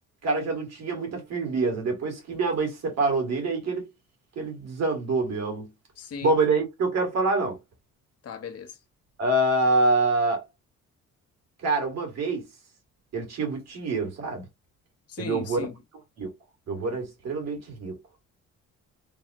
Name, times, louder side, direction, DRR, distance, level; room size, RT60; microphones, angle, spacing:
voice 1, 0.2-3.8 4.4-5.7 6.2-7.6 9.2-10.4 11.6-12.4 13.1-14.4 15.2-15.7 16.2-16.3 16.7-18.0, right 3 dB, 60° right, 1.8 m, -26 dB
voice 2, 6.0-6.3 8.2-8.8 15.1-15.7, left 6 dB, 55° left, 0.9 m, -37 dB
3.4 x 2.1 x 2.7 m
cardioid pair, 90°, 30 cm